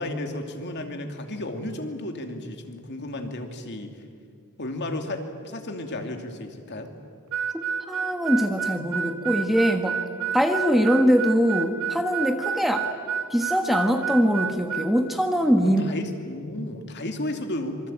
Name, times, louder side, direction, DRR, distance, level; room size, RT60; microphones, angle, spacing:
voice 1, 0.0-4.0 4.6-6.9 15.6-17.9, left 1 dB, 50° left, 5 dB, 2.8 m, -33 dB
Harmonica, 7.3-14.9, right 7 dB, 80° right, 1.9 m, -29 dB
voice 2, 7.5-10.0 10.3-12.9 13.3-15.8, equal, ahead, 5 dB, 1.3 m, -22 dB
26.5 x 24.5 x 8.9 m, 2.3 s
head